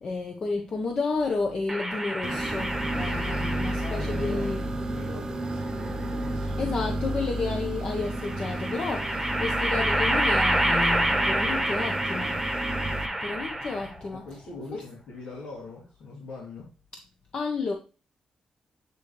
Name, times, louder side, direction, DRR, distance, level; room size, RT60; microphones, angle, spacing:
voice 1, 0.0-4.6 6.6-12.5 13.2-14.3 17.3-17.7, left 4 dB, 45° left, 1.0 m, -31 dB
sound 1, 1.7-4.3 5.5-6.5 8.1-14.1, right 1 dB, 5° right, 1.2 m, -28 dB
sound 2, 2.2-13.1, right 1 dB, 30° right, 0.9 m, -32 dB
voice 2, 3.8-4.5 4.9-6.7 14.1-16.7, left 3 dB, 85° left, 2.6 m, -41 dB
9.2 x 4.0 x 3.2 m
wide cardioid pair, 135°, 2 cm